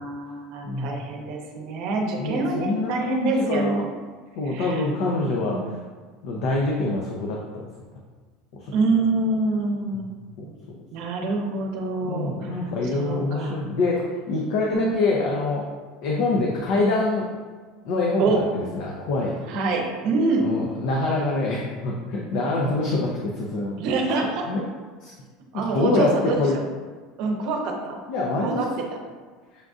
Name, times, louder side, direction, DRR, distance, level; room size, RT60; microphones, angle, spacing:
voice 1, 0.0-3.9 4.4-4.8 5.2-5.6 8.7-10.1 10.9-12.6 12.9-13.6 14.7-15.3 18.2-18.4 19.5-20.5 23.8-24.5 25.5-26.4 27.2-28.0 28.4-29.0, right 3 dB, 55° right, 2 dB, 0.7 m, -26 dB
voice 2, 0.6-1.0 2.2-3.8 4.4-5.6 6.2-7.6 8.5-8.7 9.9-10.0 10.4-10.5 12.0-15.6 16.0-17.3 17.8-19.4 20.4-23.8 24.5-24.6 25.0-25.1 25.5-26.1 26.4-26.6 28.1-28.6, left 2 dB, 65° left, -2 dB, 0.5 m, -25 dB
6.5 x 2.5 x 2.4 m, 1.5 s
supercardioid pair, 150°, 0 cm